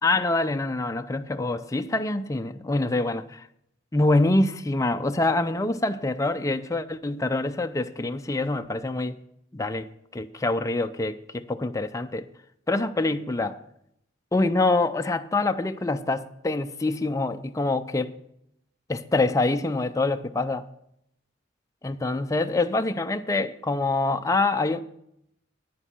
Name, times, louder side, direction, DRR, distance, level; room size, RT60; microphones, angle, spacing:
voice 1, 0.0-3.5 3.9-9.2 9.5-12.3 12.7-13.6 14.3-18.2 18.9-20.7 21.8-24.8, left 2 dB, 15° left, 0.4 m, -25 dB
9.9 x 9.5 x 5.8 m
head